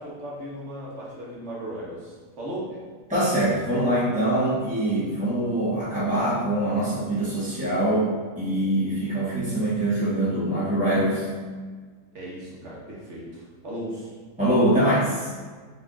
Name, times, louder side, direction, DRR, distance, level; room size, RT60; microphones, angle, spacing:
voice 1, 0.0-2.7 12.1-14.1, right 1 dB, 55° right, -5 dB, 1.2 m, -36 dB
voice 2, 3.1-11.3 14.4-15.3, right 1 dB, 5° right, -10 dB, 0.7 m, -24 dB
4.7 x 3.1 x 3.6 m, 1.5 s
omnidirectional pair, 1.6 m